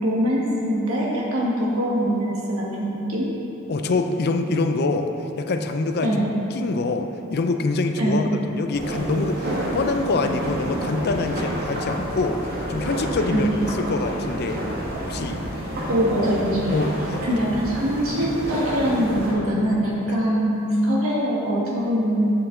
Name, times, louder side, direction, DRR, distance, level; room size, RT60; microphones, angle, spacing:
voice 1, 0.0-3.3 6.0-6.3 8.0-8.2 13.3-13.5 15.9-16.8 17.2-22.3, equal, 80° right, -5 dB, 1.4 m, -23 dB
voice 2, 3.7-5.1 5.4-6.2 6.5-12.4 12.7-14.6 15.1-15.4 16.7-17.2 18.2-18.3 20.0-20.1, left 3 dB, 50° left, 6 dB, 0.4 m, -25 dB
sound 1, 8.7-19.3, right 1 dB, 50° right, 1.4 m, -29 dB
7.8 x 6.8 x 3.7 m, 3.0 s
head